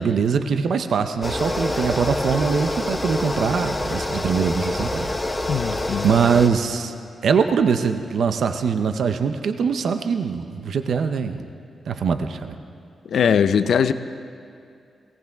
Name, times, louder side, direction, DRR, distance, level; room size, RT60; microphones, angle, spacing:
voice 1, 0.0-5.1 6.0-6.9 7.2-11.4 11.9-12.5, right 6 dB, 60° right, 8 dB, 0.6 m, -22 dB
sound 1, 1.2-6.5, left 1 dB, 15° left, 0.8 m, -26 dB
voice 2, 5.5-6.1 13.1-13.9, left 7 dB, 65° left, 12 dB, 0.5 m, -20 dB
18.0 x 17.5 x 3.5 m, 2.4 s
wide cardioid pair, 165°, 0 cm